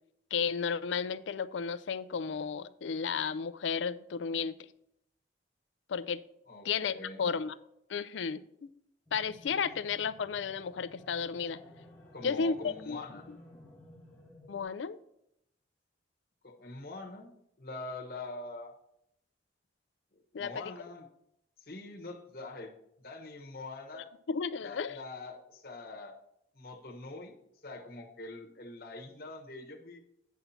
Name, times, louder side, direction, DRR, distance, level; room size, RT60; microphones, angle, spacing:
voice 1, 0.3-4.6 5.9-6.2 6.6-7.5 7.9-8.4 9.1-11.6 12.2-13.0 14.5-15.0 20.3-20.6 23.9-25.0, left 6 dB, 85° left, 15 dB, 0.4 m, -33 dB
voice 2, 6.5-7.3 12.1-13.3 16.4-17.3 17.6-18.7 20.3-21.1 21.6-24.1 24.6-26.1 26.5-27.4 27.6-30.0, left 2 dB, 50° left, 0 dB, 1.1 m, -44 dB
sound 1, 9.1-14.6, left 1 dB, 10° left, 1.1 m, -55 dB
9.2 x 5.7 x 4.1 m, 0.77 s
head